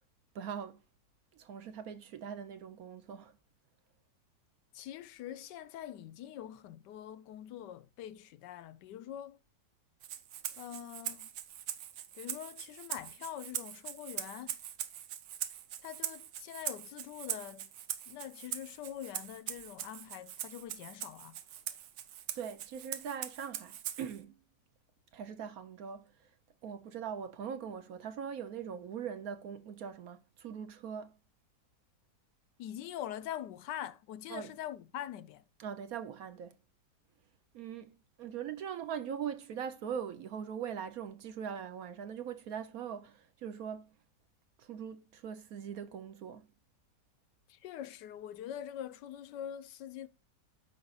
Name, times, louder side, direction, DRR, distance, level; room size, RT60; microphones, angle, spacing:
voice 1, 0.3-0.8 1.3-3.4 22.4-24.4 25.1-26.3 26.6-31.1 34.3-34.5 35.6-36.5 37.5-43.9 44.6-46.4, right 8 dB, 65° right, 1.0 m, -41 dB
voice 2, 4.7-9.4 10.6-11.3 12.1-14.6 15.8-17.7 18.1-21.4 32.6-35.4 47.5-50.1, left 11 dB, 80° left, 1.3 m, -44 dB
Rattle (instrument), 10.0-24.2, right 11 dB, 90° right, 1.4 m, -42 dB
13.5 x 5.4 x 2.4 m
omnidirectional pair, 1.9 m